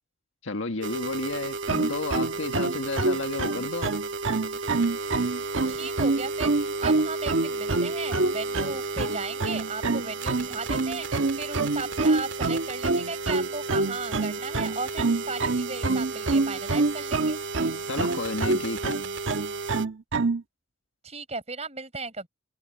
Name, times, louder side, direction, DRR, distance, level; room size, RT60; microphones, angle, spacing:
voice 1, 0.4-3.9 17.9-19.0, left 3 dB, 90° left, 1.7 m, -32 dB
sound 1, 0.8-19.9, right 4 dB, 70° right, 2.4 m, -34 dB
sound 2, 1.7-20.4, right 3 dB, 90° right, 1.3 m, -26 dB
voice 2, 5.7-17.4 21.0-22.3, right 3 dB, 35° right, 7.2 m, -36 dB
head